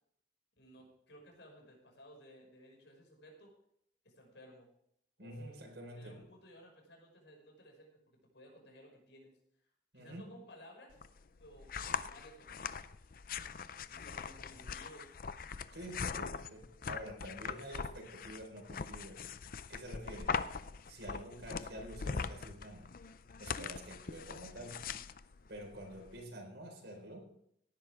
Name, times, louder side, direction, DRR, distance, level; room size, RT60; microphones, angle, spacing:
voice 1, 0.5-3.5 4.0-4.7 5.2-5.5 5.9-9.7 9.9-11.0 11.4-12.8 13.8-15.2, equal, 85° left, 0 dB, 5.7 m, -57 dB
voice 2, 5.2-6.2 9.9-10.3 15.7-19.3 19.7-20.4 20.9-22.9 23.4-25.0 25.5-27.3, equal, 75° right, 1 dB, 4.4 m, -48 dB
sound 1, 10.9-26.2, left 5 dB, 50° left, 0.5 m, -42 dB
18.0 x 11.0 x 3.6 m, 0.72 s
head